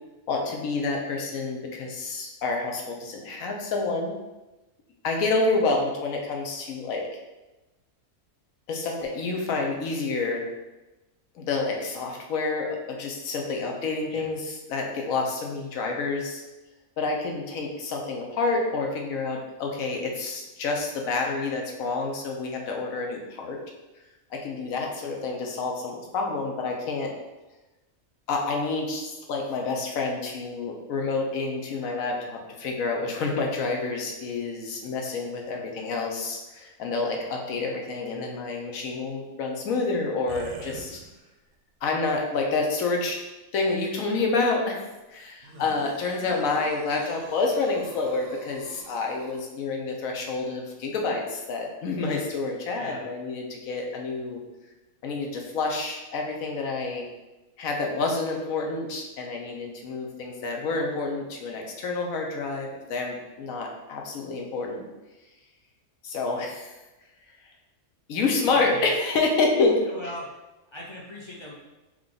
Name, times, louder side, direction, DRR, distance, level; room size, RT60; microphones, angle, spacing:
voice 1, 0.3-4.1 5.0-7.1 8.7-10.4 11.3-16.4 17.0-23.6 24.3-27.1 28.3-41.0 41.8-43.2 43.5-44.8 45.1-54.4 55.0-57.0 57.6-64.8 66.0-66.7 68.1-69.7, left 3 dB, 80° left, 1 dB, 1.2 m, -28 dB
sound 1, 40.3-41.5 42.2-42.3 45.4-49.4, right 4 dB, 75° right, 0.9 m, -45 dB
voice 2, 52.8-53.1 68.5-68.9 69.8-70.3 70.7-71.5, left 1 dB, 30° left, -3 dB, 0.5 m, -40 dB
4.8 x 2.4 x 3.8 m, 1.0 s
omnidirectional pair, 1.5 m